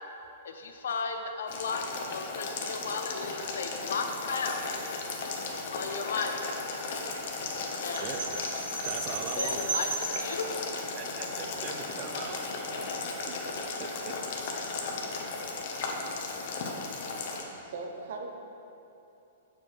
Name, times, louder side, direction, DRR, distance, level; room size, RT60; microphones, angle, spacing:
voice 1, 0.4-1.8 2.1-4.6 5.7-6.5 7.8-8.1 9.4-10.6, left 5 dB, 80° left, 5 dB, 0.7 m, -34 dB
Boiling, 1.5-17.4, left 3 dB, 55° left, 0.9 m, -36 dB
sound 1, 1.8-17.4, left 2 dB, 15° left, 1.0 m, -52 dB
sound 2, 7.9-10.4, right 4 dB, 90° right, 1.3 m, -35 dB
voice 2, 8.8-9.7 10.0-10.1 10.9-13.4 13.8-14.4, right 6 dB, 35° right, 6 dB, 0.5 m, -41 dB
voice 3, 17.6-18.3, right 4 dB, 60° right, 3 dB, 0.8 m, -38 dB
7.2 x 4.7 x 4.6 m, 2.9 s
hypercardioid pair, 150°, 0 cm